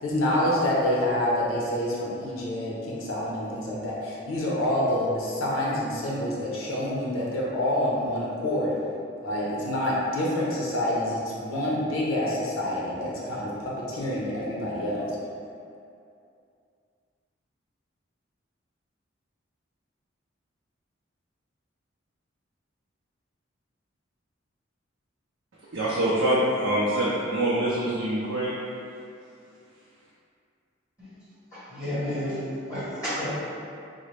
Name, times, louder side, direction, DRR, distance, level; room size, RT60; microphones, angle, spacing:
voice 1, 0.0-8.7 9.2-15.1, left 1 dB, 85° left, -5 dB, 0.7 m, -27 dB
voice 2, 25.7-28.6, right 1 dB, 65° right, -8 dB, 0.5 m, -25 dB
voice 3, 31.7-33.3, equal, 15° left, -15 dB, 1.5 m, -30 dB
3.8 x 2.1 x 3.1 m, 2.5 s
head